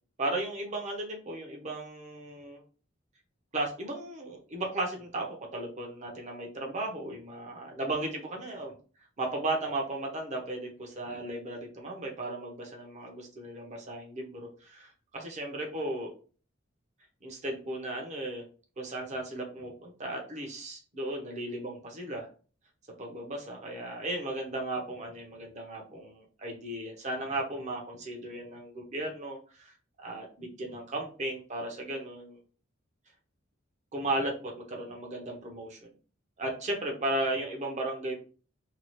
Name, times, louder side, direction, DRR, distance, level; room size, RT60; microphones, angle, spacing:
voice 1, 0.2-2.6 3.5-5.3 5.5-8.7 9.2-16.1 17.2-18.4 18.8-22.3 23.0-32.4 33.9-35.9 36.4-38.1, right 2 dB, 35° right, 0 dB, 0.7 m, -35 dB
2.8 x 2.3 x 3.1 m, 0.38 s
head